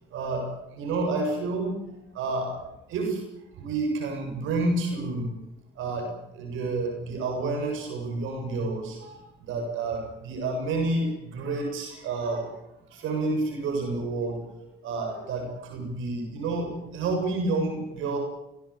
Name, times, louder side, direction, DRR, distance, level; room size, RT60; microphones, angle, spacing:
voice 1, 0.1-1.7 2.1-2.5 2.9-3.2 3.6-5.3 5.8-12.5 12.9-14.4 14.8-18.2, right 3 dB, 90° right, 2 dB, 7.5 m, -29 dB
22.5 x 18.5 x 8.8 m, 0.88 s
cardioid pair, 90°, 20 cm